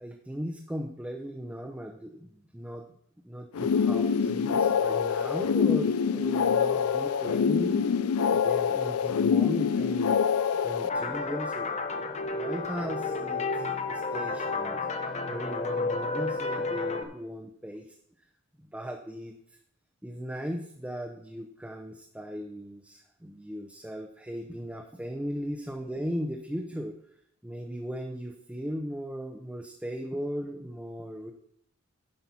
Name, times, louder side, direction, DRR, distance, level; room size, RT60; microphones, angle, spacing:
voice 1, 0.0-2.9 3.2-7.9 8.3-10.2 10.6-12.0 12.3-14.8 15.3-17.9 18.6-19.3 20.0-26.9 27.4-31.3, equal, 5° right, 1 dB, 0.6 m, -37 dB
sound 1, 3.5-10.9, left 6 dB, 90° left, 0.4 m, -25 dB
sound 2, 10.9-17.0, left 3 dB, 30° left, 0.8 m, -31 dB
10.5 x 5.5 x 5.7 m, 0.68 s
head